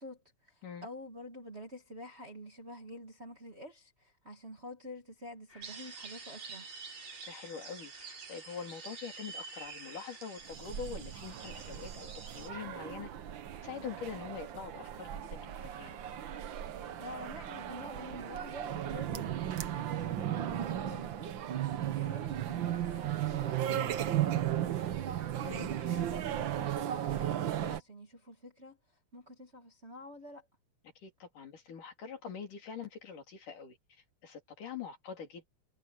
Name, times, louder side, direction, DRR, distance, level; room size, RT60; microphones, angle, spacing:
voice 1, 0.0-6.7 17.0-21.3 21.8-25.1 25.7-28.8 29.1-30.5, left 1 dB, 30° right, 1.3 m, -48 dB
sound 1, 5.5-10.5, left 2 dB, 20° left, 4.3 m, -57 dB
sound 2, 5.6-12.5, right 5 dB, 65° right, 5.1 m, -48 dB
voice 2, 7.2-13.1 13.6-16.0 25.4-25.7 31.0-33.8 34.2-35.5, left 6 dB, 75° left, 5.0 m, -44 dB
sound 3, 10.5-27.8, right 11 dB, 90° right, 1.0 m, -35 dB
omnidirectional pair, 3.7 m